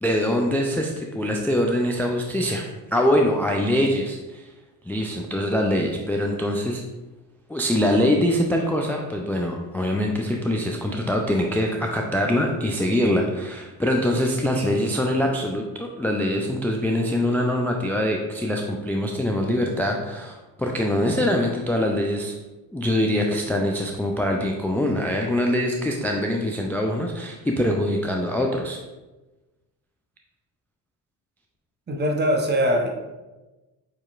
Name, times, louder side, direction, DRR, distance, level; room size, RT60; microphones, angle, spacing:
voice 1, 0.0-4.5 4.9-6.8 7.5-22.4 22.7-28.8, left 1 dB, 5° left, 1 dB, 0.4 m, -23 dB
voice 2, 31.9-32.9, equal, 20° right, 2 dB, 0.8 m, -22 dB
6.7 x 2.9 x 2.4 m, 1.1 s
hypercardioid pair, 50°, 48 cm